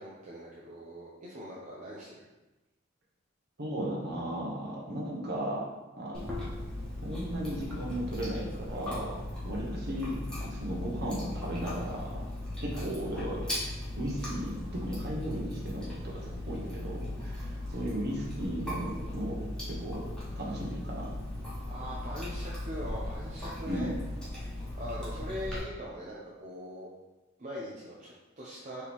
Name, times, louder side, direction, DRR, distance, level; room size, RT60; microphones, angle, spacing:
voice 1, 0.0-2.3 21.7-23.9 24.3-26.9 27.4-28.9, equal, 35° right, -6 dB, 0.6 m, -41 dB
voice 2, 3.6-5.6 6.0-6.4 7.0-9.1 9.4-12.2 12.6-13.4 14.0-19.4 19.7-20.0 20.3-21.1 23.7-24.0, equal, 55° right, -3 dB, 1.0 m, -36 dB
Chewing mastication, 6.1-25.6, left 1 dB, 5° left, 1.2 m, -38 dB
4.5 x 3.0 x 3.5 m, 1.1 s
head